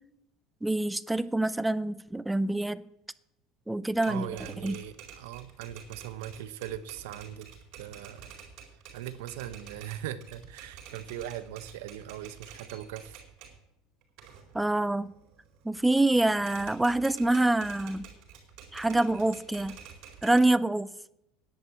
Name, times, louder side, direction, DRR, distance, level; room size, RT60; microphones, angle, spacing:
voice 1, 0.6-2.8 3.7-4.3 4.6-4.7 14.5-15.1 15.6-18.1 18.7-19.8 20.2-20.9, right 2 dB, 5° right, 0.4 m, -26 dB
Typewriter, 3.9-13.6 14.0-15.8 16.1-20.4, right 8 dB, 60° right, 4.4 m, -49 dB
voice 2, 4.1-7.5 7.7-8.3 8.9-13.2, right 11 dB, 85° right, 0.8 m, -40 dB
10.5 x 7.9 x 8.5 m
supercardioid pair, 140°, 0 cm